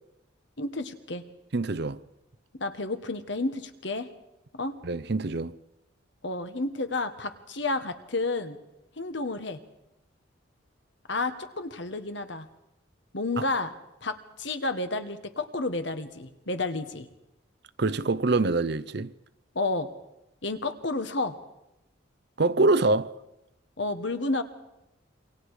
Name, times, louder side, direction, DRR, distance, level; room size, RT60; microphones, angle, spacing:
voice 1, 0.6-1.2 2.5-4.1 4.5-4.7 6.2-8.6 9.0-9.6 11.1-12.5 13.1-13.7 14.0-17.1 19.5-19.9 20.4-21.3 23.8-24.4, left 2 dB, 65° left, 1.6 m, -31 dB
voice 2, 1.5-2.0 4.8-5.5 13.4-13.5 17.8-19.1 22.4-23.2, right 3 dB, 55° right, 0.7 m, -25 dB
27.5 x 24.5 x 5.0 m
head